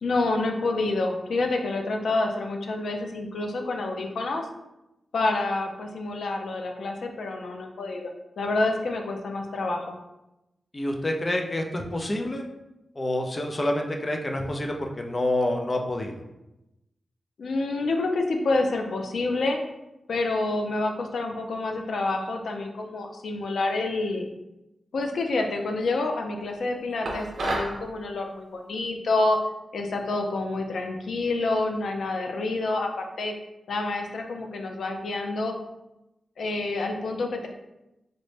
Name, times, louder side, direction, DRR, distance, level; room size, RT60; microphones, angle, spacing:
voice 1, 0.0-4.5 5.1-8.1 8.4-9.9 17.4-19.6 20.1-24.3 24.9-29.4 29.7-33.3 33.7-35.6 36.4-37.5, left 2 dB, 90° left, 3 dB, 0.5 m, -28 dB
voice 2, 10.7-12.4 13.0-16.2, left 1 dB, 30° left, 2 dB, 0.4 m, -28 dB
sound 1, 27.0-27.8, right 2 dB, 80° right, 0.7 m, -29 dB
3.9 x 2.1 x 3.2 m, 0.93 s
wide cardioid pair, 150°, 0 cm